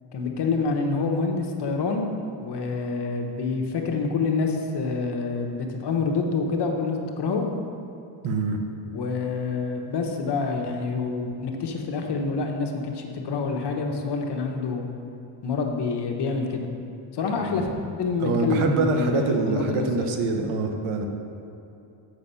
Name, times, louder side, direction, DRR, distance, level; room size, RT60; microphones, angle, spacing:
voice 1, 0.1-2.1 2.4-7.5 8.9-14.8 15.4-16.7 17.1-17.7 18.0-20.1, left 4 dB, 55° left, 2 dB, 1.2 m, -27 dB
voice 2, 8.2-8.6 18.2-21.1, right 3 dB, 75° right, 4 dB, 1.1 m, -25 dB
7.5 x 6.3 x 5.6 m, 2.7 s
cardioid pair, 100°, 50 cm